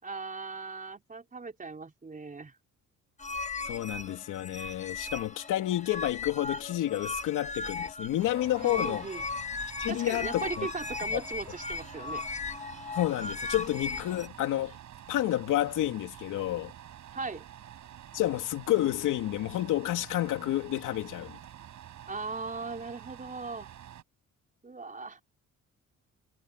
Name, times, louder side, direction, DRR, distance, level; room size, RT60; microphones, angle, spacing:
voice 1, 0.0-2.5 8.6-9.2 9.9-12.2 17.1-17.4 22.1-23.7 24.6-25.2, right 4 dB, 25° right, 4.3 m, -38 dB
sound 1, 3.2-14.3, left 4 dB, 25° left, 1.5 m, -37 dB
voice 2, 3.6-9.1 9.8-10.7 11.1-11.2 12.9-14.7 15.1-16.7 18.1-21.4, left 14 dB, 85° left, 3.0 m, -30 dB
sound 2, 8.2-24.0, right 11 dB, 70° right, 6.9 m, -48 dB
cardioid pair, 90°, 30 cm